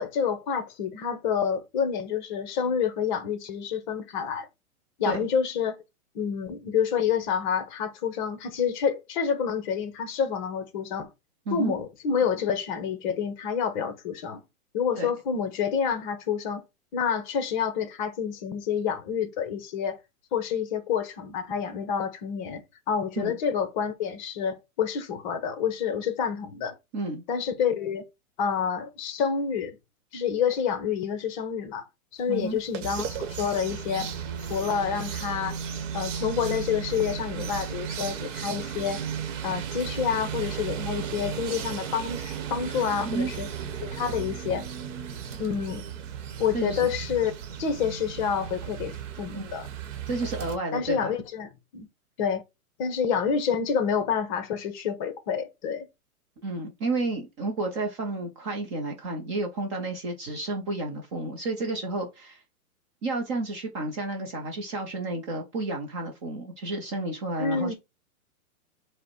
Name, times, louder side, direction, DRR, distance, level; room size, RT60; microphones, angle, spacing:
voice 1, 0.0-4.5 5.0-5.8 6.1-11.1 11.5-14.4 14.7-16.6 16.9-20.0 20.3-26.7 27.3-28.0 28.4-29.8 30.1-31.9 32.1-34.1 34.5-35.6 35.9-39.0 39.4-43.5 43.8-44.7 45.4-45.9 46.4-47.3 47.6-49.7 50.7-51.9 52.2-52.4 52.8-55.9 67.4-67.7, left 7 dB, 30° left, 0.8 m, -28 dB
voice 2, 32.3-32.6 43.1-43.3 46.5-46.9 49.3-49.5 50.1-51.1 56.4-62.4 63.0-67.7, right 2 dB, 20° right, 0.5 m, -31 dB
sound 1, 32.4-50.6, right 8 dB, 55° right, 1.0 m, -35 dB
4.9 x 2.1 x 4.4 m
hypercardioid pair, 140°, 44 cm